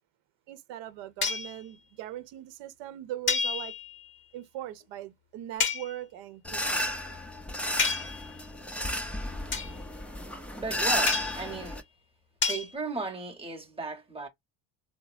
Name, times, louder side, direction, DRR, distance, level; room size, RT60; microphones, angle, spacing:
voice 1, 0.5-3.7 4.3-7.0, right 12 dB, 70° right, 0.8 m, -40 dB
sound 1, 1.2-1.6 3.3-4.0 5.6-5.9 7.8-8.3 9.5-9.8 11.1-11.5 12.4-12.7, left 5 dB, 25° left, 0.8 m, -29 dB
sound 2, 6.4-11.8, left 1 dB, 5° left, 0.4 m, -32 dB
voice 2, 10.6-11.8 12.5-14.3, right 3 dB, 10° right, 0.8 m, -35 dB
3.9 x 2.0 x 2.3 m
cardioid pair, 125°, 45 cm